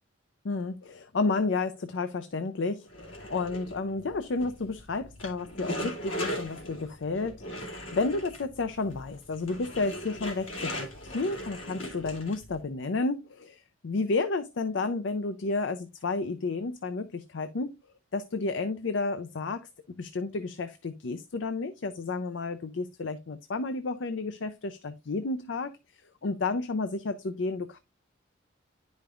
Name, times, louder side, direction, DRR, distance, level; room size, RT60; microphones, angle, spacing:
voice 1, 0.4-17.7 18.1-19.7 20.0-25.7 26.2-27.8, left 3 dB, 70° left, 0.5 m, -31 dB
sound 1, 2.9-12.6, equal, 90° left, 2.2 m, -39 dB
10.0 x 5.1 x 2.4 m
head